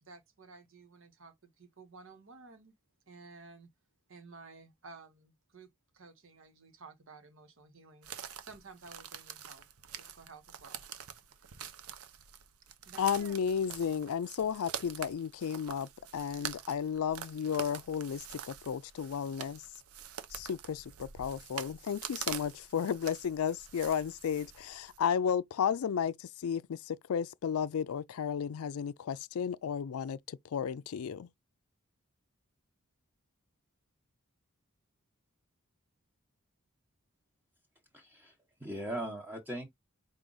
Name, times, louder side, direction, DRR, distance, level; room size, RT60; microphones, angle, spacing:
voice 1, 0.0-2.7 3.1-3.7 4.1-8.1 8.4-9.7 10.0-10.8 12.8-13.4, right 4 dB, 60° right, 1.0 m, -53 dB
sound 1, 8.0-25.0, right 8 dB, 90° right, 0.7 m, -45 dB
voice 2, 13.0-19.6 20.3-31.3, left 7 dB, 80° left, 0.4 m, -33 dB
voice 3, 37.9-38.3 38.6-39.7, right 1 dB, 10° right, 0.9 m, -39 dB
4.9 x 2.4 x 3.9 m
head